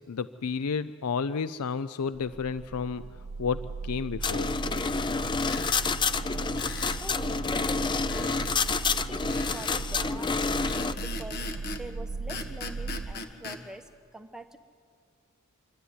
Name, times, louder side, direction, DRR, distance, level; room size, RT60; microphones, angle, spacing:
voice 1, 0.0-3.0 3.4-4.5, left 5 dB, 85° left, 15 dB, 0.5 m, -31 dB
sound 1, 2.2-13.1, right 4 dB, 40° right, 0.5 m, -37 dB
sound 2, 4.2-10.9, left 4 dB, 20° left, 0.5 m, -29 dB
sound 3, 5.4-5.8 6.6-7.0 8.1-8.6 9.3-9.8 10.6-11.9 12.3-13.6, left 3 dB, 45° left, 1.6 m, -38 dB
voice 2, 7.0-8.3 8.8-11.4 11.7-14.6, right 1 dB, 5° right, 6 dB, 1.1 m, -44 dB
27.0 x 13.0 x 9.6 m, 2.1 s
head